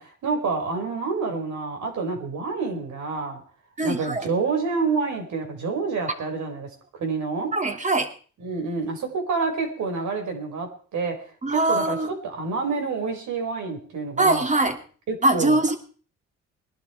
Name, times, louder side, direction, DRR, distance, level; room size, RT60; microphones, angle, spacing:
voice 1, 0.0-3.4 3.8-7.5 8.4-11.2 11.5-14.4 15.1-15.6, right 4 dB, 70° right, 3 dB, 5.3 m, -28 dB
voice 2, 3.8-4.3 7.5-8.1 11.4-12.1 14.2-14.8 15.2-15.8, right 2 dB, 25° right, 6 dB, 2.8 m, -22 dB
21.0 x 11.5 x 4.7 m, 0.41 s
cardioid pair, 90°, 30 cm